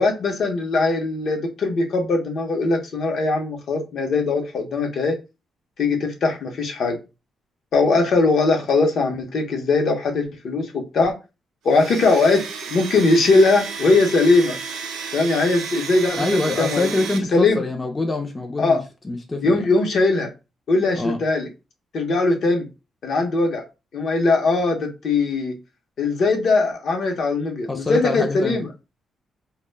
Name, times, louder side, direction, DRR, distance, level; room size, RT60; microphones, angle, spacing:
voice 1, 0.0-5.2 5.8-7.0 7.7-11.2 11.6-14.6 15.1-16.9 17.3-17.6 18.6-18.8 19.4-20.3 20.7-21.5 21.9-22.7 23.0-23.6 23.9-25.6 26.0-28.7, left 3 dB, 60° left, 0.7 m, -20 dB
Domestic sounds home sounds, 11.7-17.2, right 6 dB, 90° right, 0.5 m, -32 dB
voice 2, 16.2-19.7 21.0-21.2 27.7-28.7, left 2 dB, 20° left, 0.4 m, -25 dB
2.1 x 2.1 x 3.2 m
cardioid pair, 110°, 0 cm